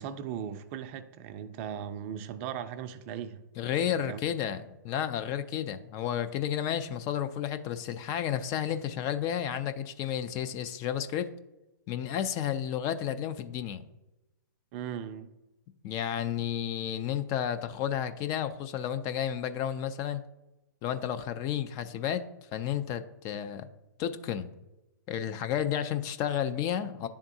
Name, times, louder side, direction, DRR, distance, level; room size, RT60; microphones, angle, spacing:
voice 1, 0.0-3.4 3.8-4.2 14.7-15.3, right 9 dB, 40° right, 0.4 m, -38 dB
voice 2, 3.6-11.3 11.9-13.8 15.8-20.2 20.8-22.2 22.5-23.7 24.0-24.5 25.1-27.1, left 10 dB, 30° left, 0.4 m, -32 dB
10.0 x 3.5 x 2.7 m
hypercardioid pair, 125°, 11 cm